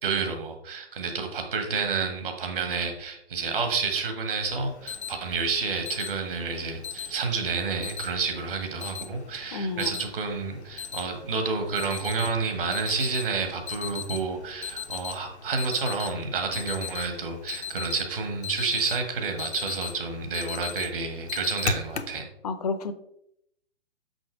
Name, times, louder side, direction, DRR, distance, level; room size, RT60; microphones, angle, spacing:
voice 1, 0.0-22.3, right 4 dB, 55° right, 5 dB, 1.7 m, -29 dB
Alarm, 4.6-22.2, left 6 dB, 80° left, 0.7 m, -38 dB
voice 2, 9.5-9.9 22.4-22.9, left 4 dB, 35° left, 11 dB, 0.6 m, -30 dB
6.3 x 5.7 x 4.5 m, 0.77 s
figure-of-eight pair, 125°, 33 cm